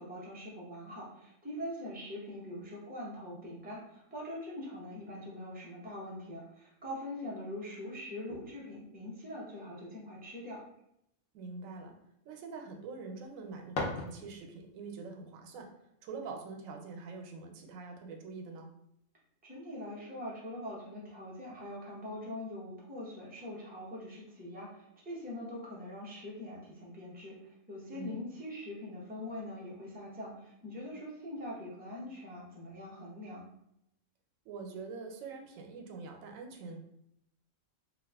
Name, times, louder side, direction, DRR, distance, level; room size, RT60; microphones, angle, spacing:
voice 1, 0.0-10.6 19.4-33.5, left 1 dB, 10° right, -5 dB, 0.6 m, -43 dB
voice 2, 11.3-12.0 12.2-18.7 27.9-28.3 34.4-36.8, right 4 dB, 85° right, 3 dB, 1.0 m, -44 dB
sound 1, 13.2-14.7, left 2 dB, 85° left, 1.1 m, -39 dB
2.8 x 2.3 x 3.4 m, 0.79 s
omnidirectional pair, 1.4 m